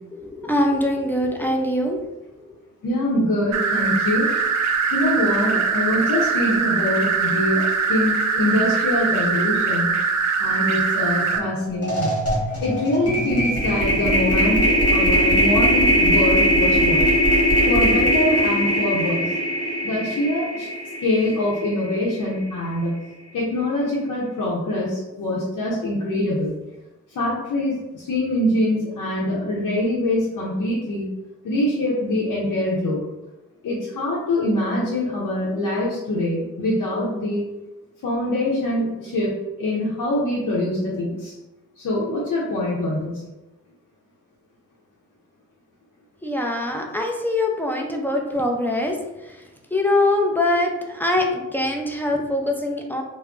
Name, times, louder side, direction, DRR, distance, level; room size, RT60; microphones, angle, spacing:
voice 1, 0.1-2.0 46.2-49.4 49.7-53.0, left 1 dB, 5° left, 1 dB, 0.4 m, -23 dB
voice 2, 2.8-4.3 4.9-9.9 10.4-12.1 12.6-17.1 17.7-19.3 19.8-20.7 21.0-22.9 23.3-26.5 27.1-31.1 31.4-33.0 33.6-37.4 38.0-41.3 41.8-43.2, left 1 dB, 80° left, -6 dB, 0.7 m, -24 dB
sound 1, 3.5-11.4, right 5 dB, 60° right, 0.4 m, -22 dB
sound 2, 11.3-11.5 11.8-22.0, equal, 50° left, 1.0 m, -20 dB
2.2 x 2.0 x 3.6 m, 1.0 s
cardioid pair, 65°, 31 cm